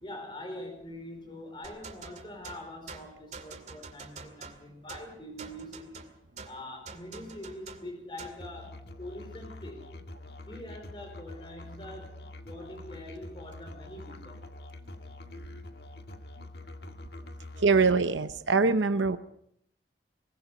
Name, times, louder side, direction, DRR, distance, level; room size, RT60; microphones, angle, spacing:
voice 1, 0.0-6.0 6.4-9.9 10.4-12.2 12.4-14.4, left 1 dB, 25° left, 4 dB, 4.9 m, -44 dB
sound 1, 1.6-8.5, right 4 dB, 40° right, 2.3 m, -46 dB
Musical instrument, 8.4-18.0, left 2 dB, 55° left, 1.9 m, -45 dB
voice 2, 17.6-19.2, right 4 dB, 85° right, 10 dB, 0.8 m, -23 dB
23.0 x 20.5 x 5.5 m, 0.70 s
head